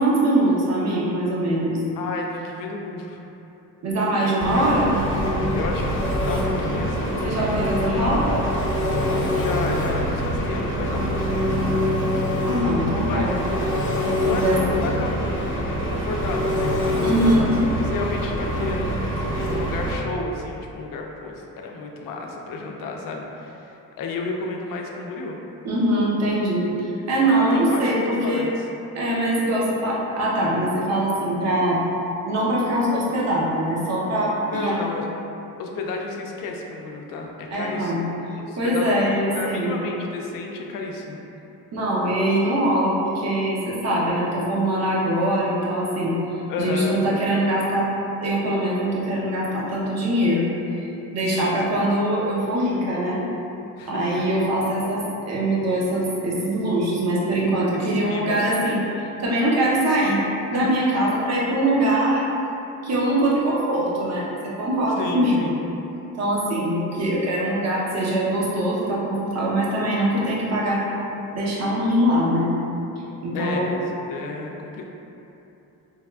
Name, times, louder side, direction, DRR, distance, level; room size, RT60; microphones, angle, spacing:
voice 1, 0.0-1.8 3.8-5.0 7.2-8.5 12.4-14.8 17.0-17.6 25.6-28.4 28.9-31.8 32.2-34.8 37.5-38.0 38.6-39.8 41.7-46.2 46.6-47.9 48.2-53.2 53.9-58.8 59.2-62.3 62.8-64.3 64.6-65.7 66.2-70.8 71.3-72.5 73.2-73.7, right 1 dB, 50° right, -5 dB, 0.8 m, -22 dB
voice 2, 2.0-3.2 4.2-4.6 5.5-5.9 6.2-7.8 8.2-8.3 9.3-11.9 13.1-13.3 14.2-15.6 15.9-17.2 17.9-25.4 27.4-28.6 34.5-35.2 35.6-38.0 38.4-41.2 46.5-47.0 51.3-51.9 53.8-54.2 57.7-58.5 65.0-65.6 73.3-73.8 74.1-74.9, left 3 dB, 70° left, 1 dB, 0.5 m, -32 dB
Engine, 4.4-19.9, equal, 35° left, 0.7 m, -24 dB
3.3 x 2.3 x 2.3 m, 2.9 s
cardioid pair, 90°, 34 cm